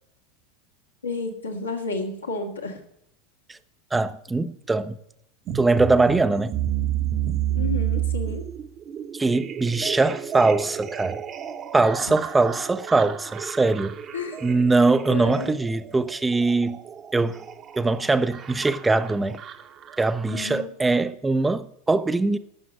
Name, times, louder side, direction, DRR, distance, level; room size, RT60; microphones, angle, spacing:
voice 1, 1.0-2.8 7.5-8.4 14.1-14.4 15.1-15.5 20.3-20.7, left 3 dB, 80° left, 2.0 m, -31 dB
voice 2, 3.9-5.0 5.5-6.5 9.1-11.2 11.7-13.9 14.4-16.8 17.1-17.4 17.8-19.4 20.0-22.4, right 3 dB, 10° right, 0.6 m, -22 dB
sound 1, 5.5-20.6, right 11 dB, 35° right, 1.1 m, -31 dB
12.0 x 7.2 x 7.2 m
figure-of-eight pair, 80°, 0 cm